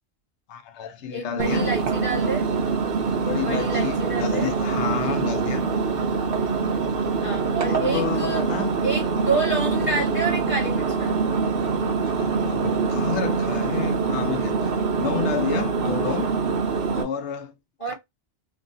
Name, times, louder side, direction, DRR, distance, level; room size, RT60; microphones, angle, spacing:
voice 1, 0.5-1.7 3.1-5.7 7.6-8.7 12.2-14.7 15.0-16.3 16.9-17.5, left 7 dB, 80° left, 0.9 m, -30 dB
voice 2, 1.1-2.5 3.4-4.5 7.2-11.2 17.8-17.9, right 3 dB, 30° left, 1.4 m, -28 dB
Engine, 1.4-17.0, right 5 dB, 60° right, 0.8 m, -24 dB
3.1 x 2.2 x 2.5 m
omnidirectional pair, 1.2 m